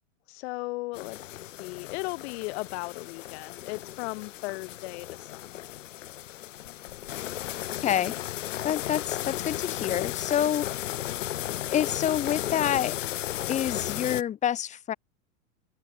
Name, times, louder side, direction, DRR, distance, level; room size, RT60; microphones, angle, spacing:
voice 1, 0.3-5.7, left 24 dB, 55° left, 5.4 m, -37 dB
sound 1, 0.9-14.2, left 13 dB, 75° left, 5.0 m, -35 dB
voice 2, 7.8-8.1 8.6-10.7 11.7-13.0 13.5-14.9, left 10 dB, 20° left, 0.9 m, -27 dB
open air
hypercardioid pair, 130°, 38 cm